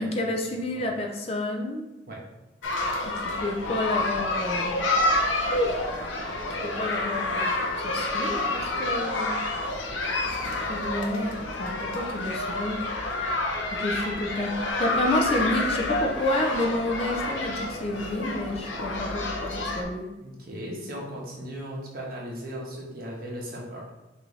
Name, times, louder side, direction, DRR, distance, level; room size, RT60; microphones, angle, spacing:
voice 1, 0.0-1.8 3.0-4.8 5.5-5.9 6.6-7.5 7.8-9.4 10.7-12.8 13.7-20.1, left 1 dB, 30° left, 1 dB, 0.5 m, -29 dB
sound 1, 2.6-19.8, left 2 dB, 80° left, 0.7 m, -29 dB
voice 2, 20.2-23.9, equal, 50° right, -3 dB, 1.2 m, -37 dB
6.0 x 2.7 x 3.2 m, 1.0 s
head